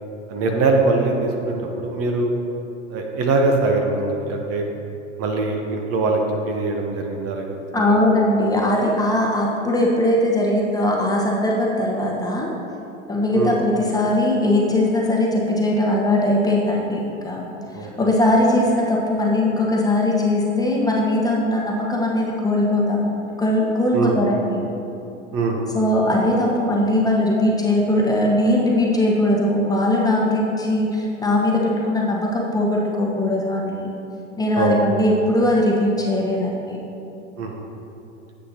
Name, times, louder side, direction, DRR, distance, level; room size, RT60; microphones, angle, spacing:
voice 1, 0.3-2.4 2.9-4.7 5.2-7.5 7.7-8.0 13.3-13.6 17.7-17.9 23.9-24.3 25.3-25.6 34.6-34.8 37.4-37.5, right 3 dB, 40° right, 2 dB, 1.1 m, -22 dB
voice 2, 7.7-12.5 13.1-17.5 17.8-24.6 25.7-33.9 34.4-36.8, left 1 dB, 10° left, -3 dB, 1.2 m, -20 dB
9.9 x 7.6 x 2.9 m, 2.8 s
hypercardioid pair, 100°, 38 cm